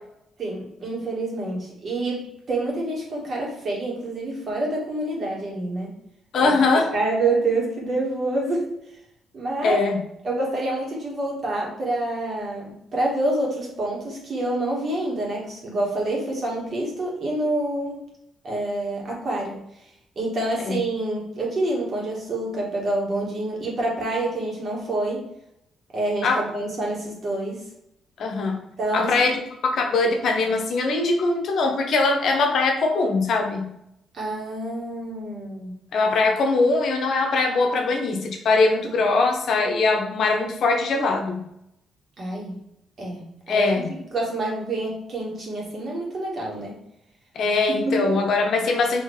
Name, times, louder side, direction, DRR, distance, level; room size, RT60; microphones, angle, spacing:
voice 1, 0.4-5.9 6.4-6.5 6.9-8.7 9.3-9.8 10.2-18.0 18.4-19.6 20.1-25.2 25.9-27.6 28.8-29.4 34.1-35.7 42.2-42.6 43.0-43.2 43.5-43.7 44.1-46.7 47.8-48.1, right 2 dB, 50° right, -2 dB, 1.6 m, -27 dB
voice 2, 6.3-6.9 9.6-10.0 20.6-20.8 26.2-26.4 28.2-28.6 28.9-33.7 35.9-41.5 43.5-43.9 47.3-49.0, left 3 dB, 65° left, 3 dB, 0.8 m, -22 dB
4.3 x 3.0 x 3.2 m, 0.79 s
cardioid pair, 90°, 0 cm